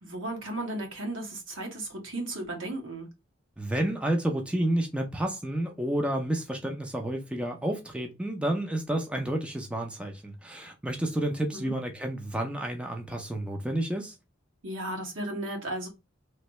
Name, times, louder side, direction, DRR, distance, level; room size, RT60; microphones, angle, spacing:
voice 1, 0.0-3.1 11.5-11.7 14.6-15.9, right 1 dB, 75° right, 1.4 m, -35 dB
voice 2, 3.6-14.1, right 1 dB, 5° right, 0.5 m, -30 dB
3.2 x 2.6 x 3.0 m
head